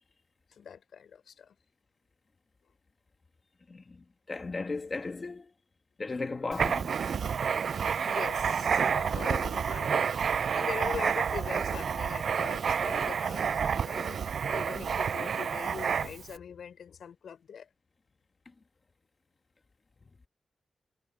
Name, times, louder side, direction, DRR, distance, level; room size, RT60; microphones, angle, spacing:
voice 1, 0.5-1.5 8.0-14.2 14.5-17.7, left 7 dB, 75° left, 5.9 m, -42 dB
voice 2, 3.7-5.5 6.0-6.9, left 3 dB, 30° left, 2.2 m, -36 dB
Writing, 6.5-16.3, right 6 dB, 60° right, 0.4 m, -29 dB
wide cardioid pair, 160°, 0 cm